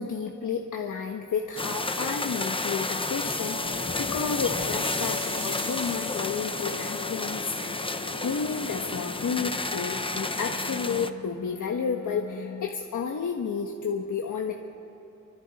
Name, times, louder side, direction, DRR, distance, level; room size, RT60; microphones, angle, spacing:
voice 1, 0.0-14.5, left 6 dB, 80° left, 1 dB, 1.2 m, -31 dB
sound 1, 1.6-11.1, left 2 dB, 15° left, 0.8 m, -31 dB
sound 2, 3.4-12.7, left 7 dB, 55° left, 0.8 m, -40 dB
sound 3, 4.8-10.4, right 4 dB, 70° right, 2.9 m, -46 dB
27.5 x 24.5 x 4.2 m, 2.7 s
wide cardioid pair, 95°, 31 cm